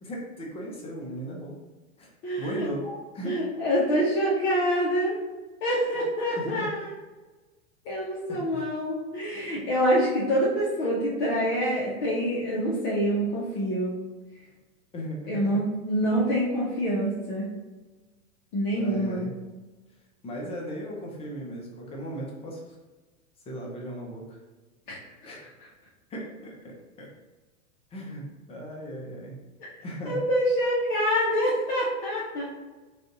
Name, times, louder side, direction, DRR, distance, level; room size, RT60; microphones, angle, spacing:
voice 1, 0.0-1.5 2.0-2.1 2.4-2.9 3.1-3.4 6.4-6.7 8.3-8.6 14.9-15.6 18.8-19.3 20.2-22.6 23.5-24.4 25.2-25.4 26.1-27.1 27.9-29.4 29.8-30.2, equal, 15° left, -2 dB, 0.6 m, -37 dB
voice 2, 2.2-2.9 3.2-5.1 5.6-6.9 7.8-13.9 15.3-17.5 18.5-19.2 24.9-25.0 29.6-29.7 30.0-32.4, equal, 40° left, -7 dB, 1.0 m, -26 dB
3.4 x 2.5 x 3.8 m, 1.2 s
hypercardioid pair, 135°, 45 cm